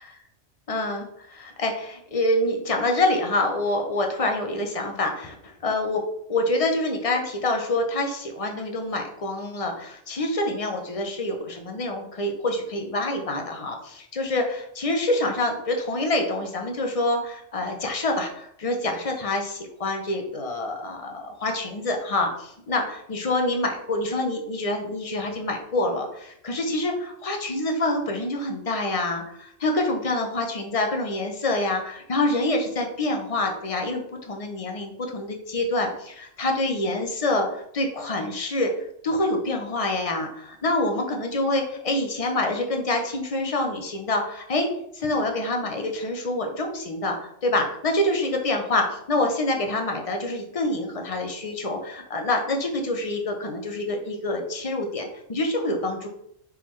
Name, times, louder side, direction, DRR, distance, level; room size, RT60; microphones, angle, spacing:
voice 1, 0.7-38.7 39.0-44.7 44.9-56.1, left 2 dB, 40° left, 3 dB, 0.6 m, -26 dB
4.5 x 3.7 x 3.1 m, 0.73 s
omnidirectional pair, 1.3 m